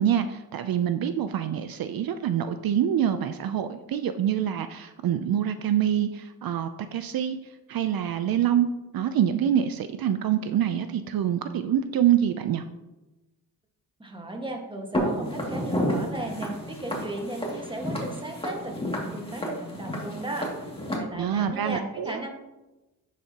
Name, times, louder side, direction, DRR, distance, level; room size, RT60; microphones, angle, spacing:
voice 1, 0.0-7.4 7.7-8.7 8.9-12.6 21.2-22.2, right 10 dB, 65° right, 10 dB, 0.5 m, -25 dB
voice 2, 14.0-20.5 20.9-22.3, right 1 dB, 15° right, 2 dB, 1.5 m, -35 dB
Walk footsteps, 14.9-21.0, equal, 15° left, 2.3 m, -31 dB
10.0 x 7.4 x 2.9 m, 1.0 s
cardioid pair, 90°, 38 cm